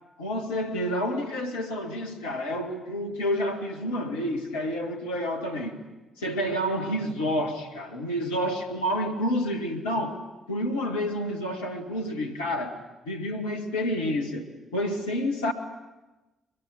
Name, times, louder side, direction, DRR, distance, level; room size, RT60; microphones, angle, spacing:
voice 1, 0.2-5.8 6.2-10.2 10.5-12.8 13.1-15.5, equal, 75° left, 3 dB, 1.8 m, -29 dB
23.0 x 22.0 x 8.5 m, 1.1 s
figure-of-eight pair, 40°, 0 cm